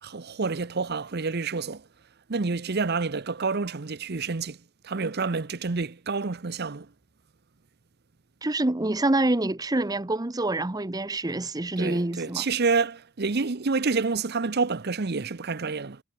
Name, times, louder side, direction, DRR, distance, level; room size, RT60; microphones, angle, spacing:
voice 1, 0.0-1.9 2.3-4.6 4.8-6.9 11.8-16.0, right 4 dB, 50° right, 0.8 m, -28 dB
voice 2, 8.4-12.5, right 2 dB, 20° right, 0.8 m, -26 dB
head